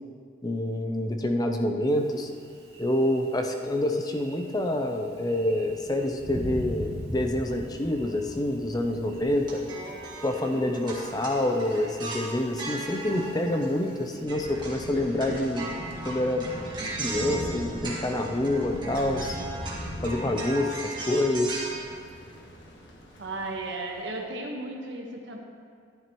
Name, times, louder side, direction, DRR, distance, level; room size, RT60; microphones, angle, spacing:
voice 1, 0.4-2.3 2.8-9.6 10.2-15.7 16.0-16.5 17.0-19.4 20.0-21.6, left 1 dB, 20° left, 4 dB, 0.6 m, -27 dB
Thunder, 1.9-14.2, equal, 65° right, 2.1 m, -42 dB
sound 1, 9.4-14.0 14.3-21.7, right 2 dB, 25° right, 1.8 m, -38 dB
Thunder 2, 14.3-24.1, equal, 80° left, 1.5 m, -39 dB
voice 2, 23.2-25.4, right 2 dB, 90° right, 1 dB, 1.3 m, -35 dB
11.5 x 10.5 x 3.0 m, 2.2 s
head